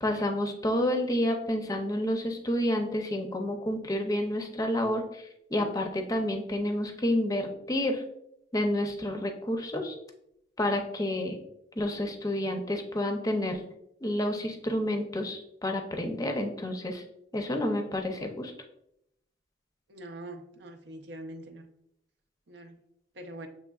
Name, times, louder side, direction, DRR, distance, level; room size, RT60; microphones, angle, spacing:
voice 1, 0.0-5.2 5.5-8.0 8.5-9.9 10.6-11.4 11.8-13.6 14.0-17.0 17.3-18.5, left 1 dB, 20° left, 4 dB, 0.6 m, -29 dB
voice 2, 19.9-21.7 22.5-22.8 23.2-23.5, right 1 dB, 70° right, 4 dB, 0.6 m, -43 dB
7.3 x 3.1 x 2.3 m, 0.77 s
head